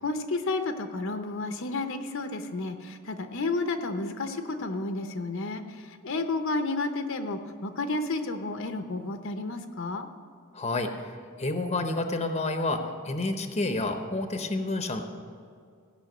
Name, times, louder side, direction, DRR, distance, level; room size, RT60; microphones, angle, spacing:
voice 1, 0.0-5.6 5.9-10.1, left 3 dB, 60° left, 7 dB, 0.8 m, -31 dB
voice 2, 10.5-11.1 11.4-15.0, left 2 dB, 30° left, 6 dB, 0.8 m, -29 dB
16.5 x 5.7 x 7.8 m, 2.2 s
head